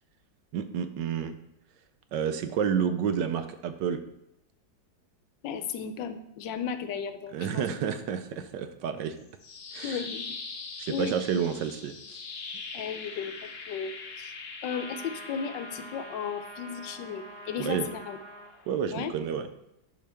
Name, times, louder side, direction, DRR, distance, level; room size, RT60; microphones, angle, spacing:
voice 1, 0.5-1.3 2.1-4.0 7.3-9.1 9.7-10.0 10.8-12.0 17.6-17.9 18.7-19.5, right 7 dB, 75° right, 9 dB, 1.2 m, -30 dB
voice 2, 5.4-7.6 9.8-10.2 10.9-11.5 12.7-14.3 14.6-18.2 18.9-19.1, left 7 dB, 80° left, 9 dB, 1.3 m, -35 dB
sound 1, 9.2-19.2, left 4 dB, 55° left, 0.7 m, -43 dB
sound 2, 14.7-18.5, right 1 dB, 45° right, 0.8 m, -45 dB
11.0 x 4.5 x 3.5 m, 0.82 s
omnidirectional pair, 2.1 m